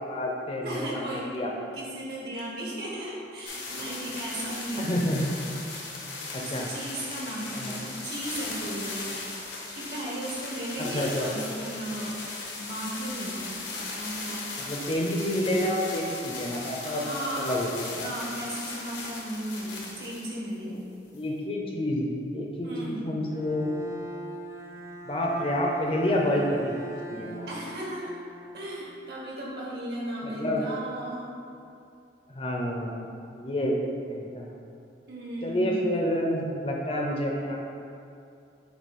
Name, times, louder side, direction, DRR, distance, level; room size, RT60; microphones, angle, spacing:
voice 1, 0.0-1.5 4.7-5.4 6.3-6.7 7.5-7.7 10.8-11.3 14.6-18.1 21.1-23.7 25.0-27.5 30.2-30.7 32.3-33.8 34.1-34.5 35.4-37.6, left 1 dB, 30° left, -1 dB, 0.6 m, -29 dB
voice 2, 0.6-1.3 1.7-4.9 6.4-9.1 9.7-12.1 12.6-13.5 13.9-14.5 16.8-17.5 18.0-20.8 22.6-23.0 27.5-28.1 28.5-31.2 35.1-35.7, right 1 dB, 60° right, -5 dB, 1.4 m, -35 dB
sound 1, 3.4-20.3 21.1-21.2, left 3 dB, 80° left, 1.0 m, -38 dB
Bowed string instrument, 23.3-29.3, right 1 dB, 15° right, 0.3 m, -42 dB
8.1 x 2.8 x 4.1 m, 2.5 s
head